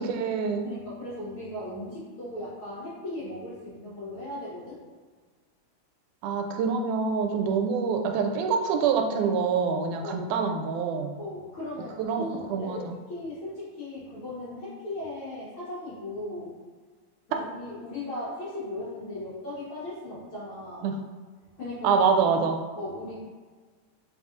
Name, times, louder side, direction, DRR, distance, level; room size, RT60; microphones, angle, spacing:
voice 1, 0.0-0.7 6.2-11.1 12.0-12.3 12.5-13.0 20.8-20.9 21.8-22.6, right 5 dB, 85° right, 4 dB, 2.0 m, -26 dB
voice 2, 0.6-4.8 7.4-7.6 10.0-10.3 11.2-16.5 17.3-20.9 21.6-22.3 22.8-23.2, left 1 dB, 70° left, -9 dB, 1.2 m, -37 dB
4.6 x 3.9 x 2.4 m, 1.5 s
omnidirectional pair, 3.6 m